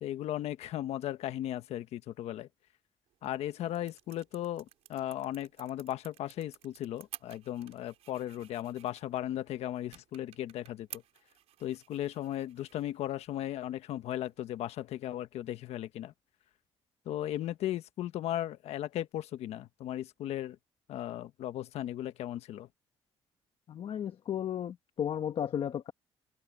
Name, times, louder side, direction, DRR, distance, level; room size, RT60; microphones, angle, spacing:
voice 1, 0.0-2.5 3.2-11.0 11.6-16.1 17.0-20.6 20.9-22.7, left 12 dB, 80° left, 1.2 m, -36 dB
sound 1, 3.1-14.6, right 12 dB, 85° right, 4.6 m, -54 dB
voice 2, 23.7-25.9, left 9 dB, 60° left, 1.2 m, -34 dB
cardioid pair, 95°, 11 cm